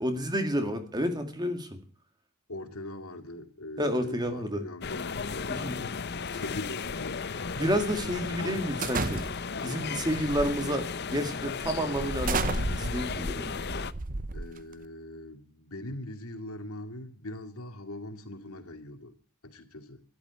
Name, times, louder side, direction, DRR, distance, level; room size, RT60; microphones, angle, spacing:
voice 1, 0.0-1.8 3.8-4.6 5.5-5.8 6.3-6.4 7.6-9.2 9.6-13.6, equal, 20° right, 2.0 m, -30 dB
voice 2, 2.5-5.6 6.4-7.8 8.2-8.6 14.3-19.2 19.4-20.0, left 1 dB, 75° left, 2.2 m, -41 dB
sound 1, 4.8-13.9, left 4 dB, 45° left, 0.7 m, -34 dB
sound 2, 8.8-9.6 10.4-10.7 11.2-11.3 12.0-14.9, right 4 dB, 40° right, 0.7 m, -33 dB
13.0 x 11.5 x 8.4 m
head